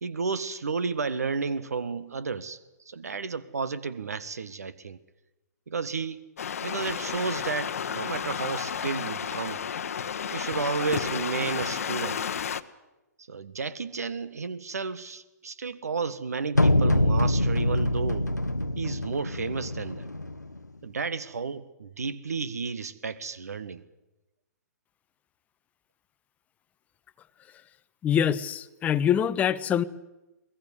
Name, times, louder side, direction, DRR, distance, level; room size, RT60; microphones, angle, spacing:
voice 1, 0.0-2.6 2.9-5.0 5.7-6.2 6.6-9.6 10.3-12.2 13.3-18.3 18.8-20.1 20.8-23.8, right 4 dB, 65° right, 16 dB, 1.4 m, -32 dB
sound 1, 6.4-12.6, left 7 dB, 55° left, 1.0 m, -32 dB
sound 2, 16.5-20.6, left 1 dB, 90° left, 0.9 m, -25 dB
voice 2, 28.0-29.8, left 9 dB, 15° left, 15 dB, 0.7 m, -24 dB
22.5 x 20.5 x 8.2 m, 1.0 s
figure-of-eight pair, 120°, 9 cm